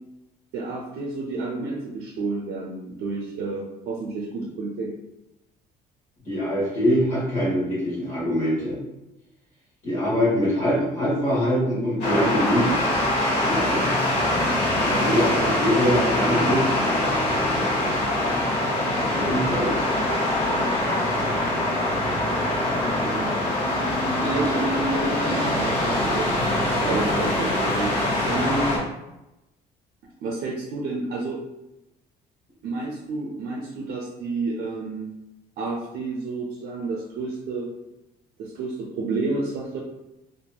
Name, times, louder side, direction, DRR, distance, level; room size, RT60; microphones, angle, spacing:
voice 1, 0.5-4.9 23.0-23.3 24.1-26.3 26.8-27.9 28.3-28.8 30.2-31.4 32.6-35.1 35.6-37.7 38.4-39.8, right 3 dB, 70° right, -2 dB, 0.5 m, -30 dB
voice 2, 6.2-8.8 9.8-12.8 13.4-14.0 14.8-16.8 19.1-19.7, equal, 45° left, -9 dB, 1.1 m, -24 dB
sound 1, 12.0-28.8, left 1 dB, 80° left, 0.9 m, -23 dB
2.7 x 2.5 x 2.2 m, 0.95 s
cardioid pair, 110°, 17 cm